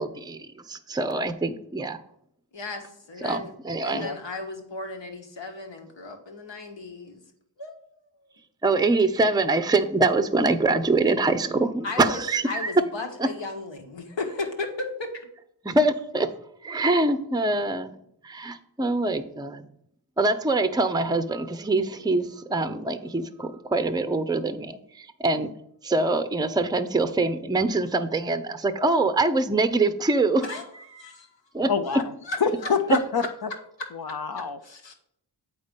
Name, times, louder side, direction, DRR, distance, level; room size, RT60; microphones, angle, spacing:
voice 1, 0.0-2.0 3.2-4.1 8.6-12.8 13.2-13.3 15.6-16.3 16.6-18.0 18.2-19.7 20.2-25.5 25.8-30.5 31.5-31.7, right 2 dB, 10° right, 11 dB, 0.6 m, -24 dB
voice 2, 2.5-3.5 3.8-7.2 7.6-7.7 11.8-15.1 30.4-30.6 30.9-31.3 31.9-32.4 34.3-34.9, left 3 dB, 70° left, 4 dB, 1.4 m, -35 dB
voice 3, 31.7-32.0 32.4-33.2 33.9-34.6, left 5 dB, 50° left, 9 dB, 0.7 m, -25 dB
7.9 x 4.1 x 5.2 m, 0.72 s
cardioid pair, 45°, 46 cm